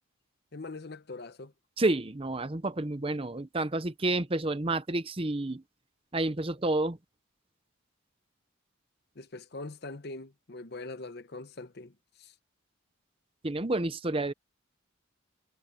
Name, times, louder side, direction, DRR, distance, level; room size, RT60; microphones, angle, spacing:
voice 1, 0.5-1.5 9.2-11.9 12.2-12.3, left 2 dB, 50° left, 0.9 m, -42 dB
voice 2, 1.8-5.6 6.1-7.0 13.4-14.3, right 2 dB, 25° right, 0.7 m, -29 dB
head